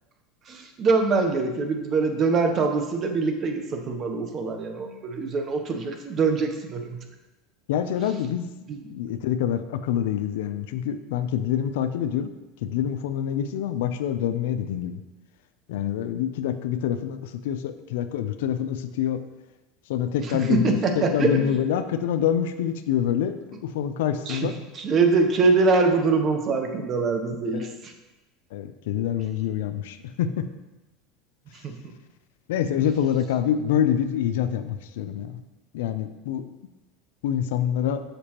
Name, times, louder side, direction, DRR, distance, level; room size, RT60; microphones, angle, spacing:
voice 1, 0.5-7.0 8.7-8.8 20.2-21.6 24.3-24.5 24.7-27.9 31.6-31.7, right 4 dB, 35° right, 5 dB, 0.8 m, -24 dB
voice 2, 7.7-12.3 12.6-15.0 15.7-19.2 19.9-24.5 27.5-27.7 28.5-30.5 32.5-35.4 35.7-36.4 37.2-38.0, left 9 dB, 85° left, 10 dB, 0.4 m, -26 dB
6.6 x 5.2 x 2.9 m, 1.1 s
supercardioid pair, 140°, 0 cm